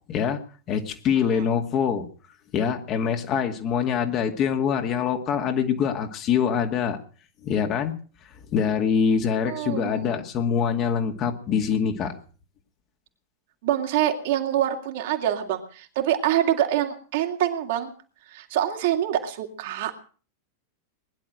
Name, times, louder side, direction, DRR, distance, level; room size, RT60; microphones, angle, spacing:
voice 1, 0.1-0.4 0.7-2.1 2.5-7.0 7.4-7.9 8.5-12.1, left 7 dB, 35° left, 5 dB, 2.2 m, -24 dB
voice 2, 9.4-10.2 13.6-17.9 18.3-20.0, right 11 dB, 55° right, 3 dB, 2.5 m, -25 dB
20.5 x 11.0 x 6.4 m, 0.41 s
figure-of-eight pair, 90°, 0 cm